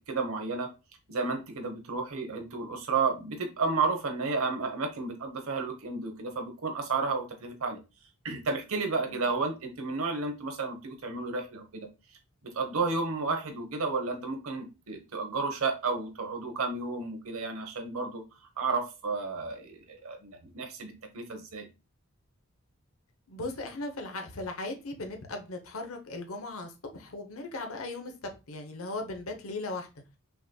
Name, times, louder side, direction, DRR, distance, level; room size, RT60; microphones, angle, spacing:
voice 1, 0.1-0.7 1.1-7.8 8.2-11.9 12.5-18.2 18.6-21.7, right 4 dB, 80° right, 1.0 m, -32 dB
voice 2, 23.3-29.9, left 2 dB, 75° left, 0.9 m, -38 dB
5.6 x 2.9 x 2.3 m
head